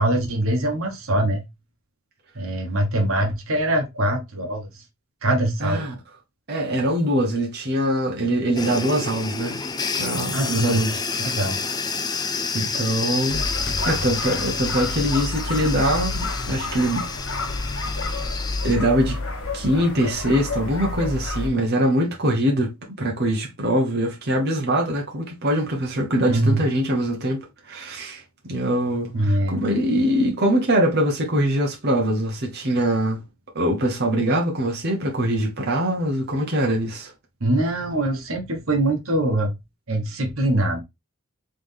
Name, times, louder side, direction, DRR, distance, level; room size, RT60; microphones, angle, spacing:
voice 1, 0.0-1.4 2.3-4.7 5.2-5.8 10.3-10.8 11.2-11.6 26.3-26.6 29.1-29.6 37.4-39.5 39.9-40.8, right 1 dB, 80° right, 1.1 m, -23 dB
voice 2, 5.6-6.0 6.5-9.6 9.9-11.3 12.5-13.4 13.8-17.1 18.6-19.3 19.5-33.2 33.5-37.1, right 1 dB, 50° right, 1.0 m, -23 dB
sound 1, 8.6-18.8, left 5 dB, 20° left, 0.4 m, -29 dB
sound 2, 13.3-21.5, left 2 dB, 85° left, 1.3 m, -29 dB
3.7 x 3.3 x 3.5 m
head